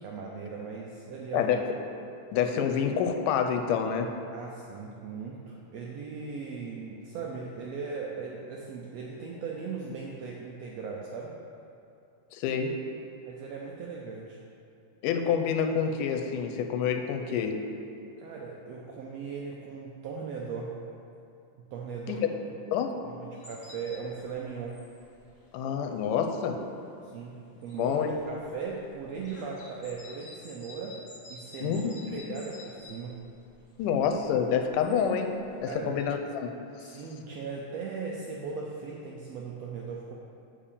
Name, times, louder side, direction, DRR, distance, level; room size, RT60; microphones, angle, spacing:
voice 1, 0.0-1.4 4.3-11.3 13.3-14.4 18.2-20.7 21.7-22.2 23.4-24.8 27.0-27.4 27.6-31.0 31.3-33.1 35.7-36.0 36.8-40.2, right 5 dB, 80° right, -2 dB, 1.4 m, -38 dB
voice 2, 2.3-4.1 12.3-12.7 15.0-17.6 22.1-22.3 22.7-22.9 25.5-26.6 27.8-28.1 31.6-32.2 33.8-36.5 36.9-37.0, left 7 dB, 90° left, 5 dB, 2.2 m, -28 dB
sound 1, 23.4-36.0, left 2 dB, 65° left, 0.7 m, -52 dB
7.4 x 4.9 x 6.9 m, 2.6 s
omnidirectional pair, 3.7 m